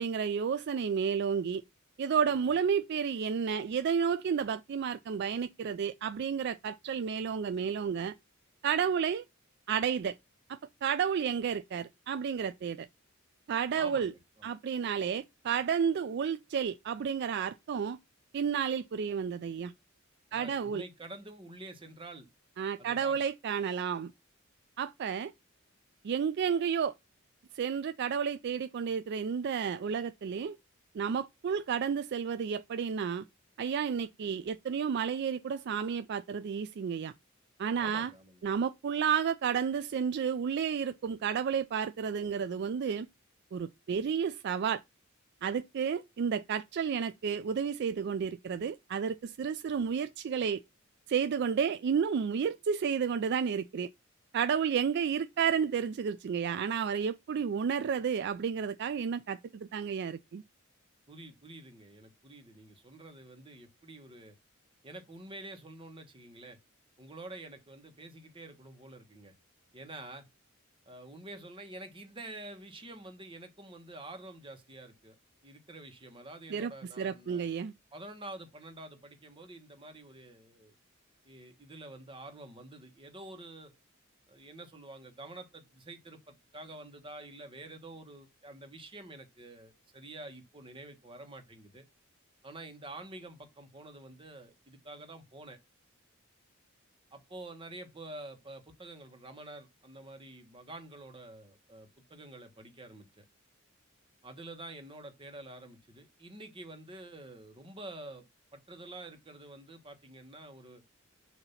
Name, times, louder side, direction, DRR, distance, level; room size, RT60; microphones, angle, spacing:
voice 1, 0.0-1.6 2.0-8.1 8.6-9.2 9.7-10.2 10.8-12.9 13.5-14.1 14.4-18.0 18.3-19.7 20.3-20.8 22.6-24.1 24.8-25.3 26.0-26.9 27.5-30.6 30.9-33.2 33.6-37.1 37.6-38.1 38.4-43.1 43.5-44.8 45.4-50.6 51.1-53.9 54.3-60.4 76.5-76.7 77.0-77.7, right 7 dB, 55° right, 0.3 m, -31 dB
voice 2, 13.7-14.5 20.3-22.3 22.8-23.2 37.8-38.4 61.1-64.3 64.8-66.6 67.0-69.3 69.7-70.2 70.9-75.1 75.4-77.4 77.9-80.7 81.2-83.7 84.3-91.8 92.4-95.6 97.1-103.2 104.2-108.2 108.5-110.8, right 2 dB, 25° right, 1.3 m, -48 dB
6.8 x 2.8 x 5.7 m
head